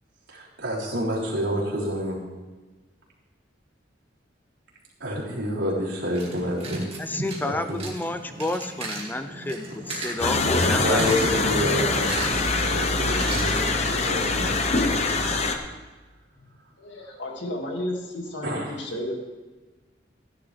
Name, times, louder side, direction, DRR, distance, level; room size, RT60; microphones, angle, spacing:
voice 1, 0.3-2.2 5.0-6.9 7.4-7.8 9.9-10.0 10.7-15.1 18.4-18.7, equal, 80° right, -5 dB, 3.7 m, -29 dB
sound 1, 6.0-13.9, right 2 dB, 35° right, 2.3 m, -36 dB
voice 2, 7.0-11.6, left 2 dB, 10° left, 9 dB, 0.4 m, -30 dB
sound 2, 10.2-15.6, left 3 dB, 35° left, 0.8 m, -24 dB
voice 3, 16.8-19.1, left 1 dB, 75° left, 0 dB, 2.2 m, -32 dB
16.0 x 10.5 x 3.4 m, 1.3 s
head